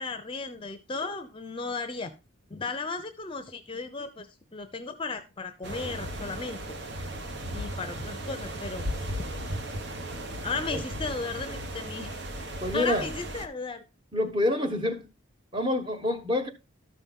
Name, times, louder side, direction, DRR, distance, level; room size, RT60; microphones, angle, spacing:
voice 1, 0.0-2.1 2.5-4.3 4.5-6.8 7.5-8.8 10.4-12.2 12.7-13.8, left 4 dB, 25° left, 0.7 m, -35 dB
sound 1, 5.6-13.5, right 1 dB, 55° right, 1.1 m, -36 dB
voice 2, 12.6-13.1 14.1-15.1 15.5-16.5, left 1 dB, 25° right, 1.2 m, -27 dB
13.0 x 5.7 x 3.7 m
head